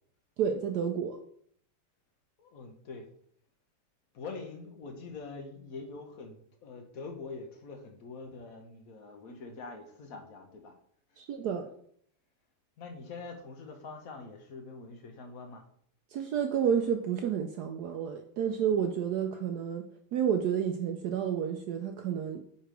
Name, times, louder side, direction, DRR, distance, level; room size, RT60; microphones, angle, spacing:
voice 1, 0.4-1.2 11.2-11.7 16.1-19.8 20.1-22.4, right 8 dB, 85° right, 6 dB, 0.8 m, -30 dB
voice 2, 2.4-3.1 4.1-10.7 12.8-15.6, left 4 dB, 50° left, 4 dB, 1.1 m, -44 dB
5.6 x 4.7 x 5.1 m, 0.65 s
omnidirectional pair, 2.3 m